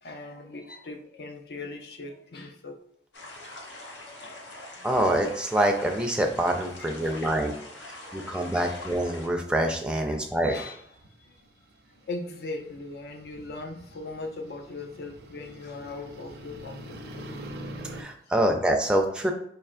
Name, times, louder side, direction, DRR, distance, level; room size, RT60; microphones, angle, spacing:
voice 1, 0.0-2.8 3.7-3.9 4.2-4.5 4.8-4.9 6.8-7.6 8.1-8.9 9.9-10.8 11.2-11.4 12.1-17.4, left 3 dB, 65° left, 5 dB, 0.5 m, -40 dB
sound 1, 3.1-9.3, left 2 dB, 85° left, 0.9 m, -44 dB
voice 2, 4.8-7.5 8.1-10.7 17.9-19.3, right 1 dB, 5° right, 2 dB, 0.4 m, -25 dB
sound 2, 7.8-9.0 9.6-18.0, right 1 dB, 65° right, 0.5 m, -45 dB
4.4 x 2.9 x 2.4 m, 0.69 s
head